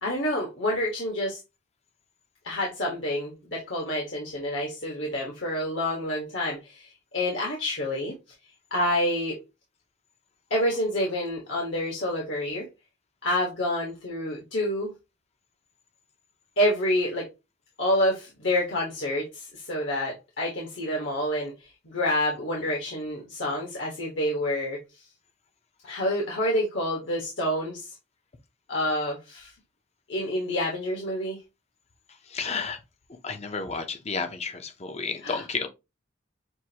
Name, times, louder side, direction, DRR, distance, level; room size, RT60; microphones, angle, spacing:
voice 1, 0.0-1.4 2.4-8.2 8.7-9.4 10.5-12.7 13.2-14.9 16.6-17.3 17.8-24.8 25.8-27.9 28.7-29.5 30.1-31.4 35.2-35.4, left 1 dB, 65° left, 1.3 m, -28 dB
voice 2, 32.3-32.8 33.2-35.7, left 4 dB, 35° left, 0.6 m, -31 dB
6.1 x 2.6 x 2.8 m
head